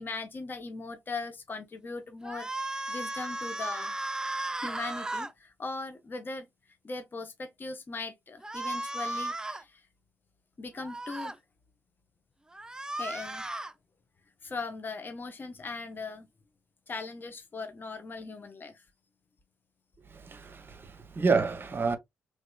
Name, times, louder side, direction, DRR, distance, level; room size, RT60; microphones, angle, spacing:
voice 1, 0.0-3.9 4.6-6.5 6.8-9.8 10.6-11.3 13.0-13.5 14.4-16.3 16.9-18.8, left 3 dB, 30° left, 0.7 m, -39 dB
sound 1, 2.2-5.3 8.4-9.6 10.8-11.3 12.5-13.7, right 2 dB, 10° right, 0.5 m, -35 dB
voice 2, 20.1-22.0, right 4 dB, 35° right, 0.8 m, -29 dB
3.2 x 3.0 x 2.2 m
figure-of-eight pair, 45°, 7 cm